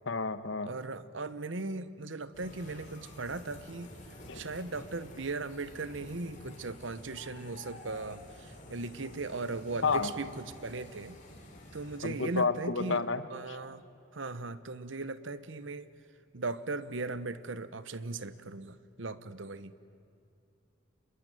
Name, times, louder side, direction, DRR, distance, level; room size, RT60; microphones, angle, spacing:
voice 1, 0.1-0.7 4.3-4.4 9.8-10.1 12.0-13.6, left 4 dB, 70° left, 13 dB, 1.1 m, -31 dB
voice 2, 0.6-3.9 4.3-8.2 8.7-11.2 11.7-13.0 13.3-13.8 14.1-15.9 16.3-19.7, right 3 dB, 70° right, 14 dB, 1.0 m, -38 dB
sound 1, 2.3-12.2, left 1 dB, 35° left, 3.9 m, -50 dB
26.0 x 21.5 x 9.1 m, 2.6 s
head